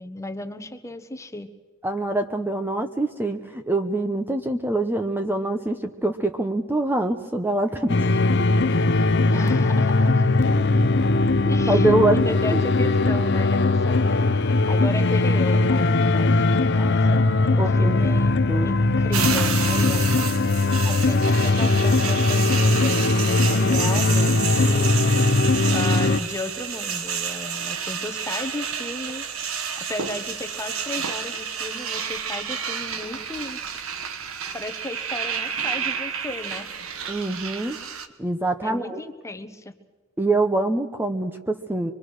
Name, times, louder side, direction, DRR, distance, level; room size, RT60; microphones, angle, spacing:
voice 1, 0.0-1.5 9.3-10.5 11.5-18.4 18.6-24.9 25.7-29.3 29.8-33.6 34.5-36.7 38.6-39.7, left 2 dB, 15° left, 9 dB, 1.1 m, -34 dB
voice 2, 1.8-8.1 11.7-12.3 12.5-12.6 17.6-18.0 18.5-18.7 37.1-37.8 38.2-39.0 40.2-41.9, right 2 dB, 10° right, 6 dB, 0.8 m, -24 dB
sound 1, 7.9-26.2, left 2 dB, 55° left, 0.7 m, -20 dB
sound 2, 19.1-38.1, right 7 dB, 85° right, 1.3 m, -30 dB
25.0 x 23.0 x 6.4 m, 1.3 s
head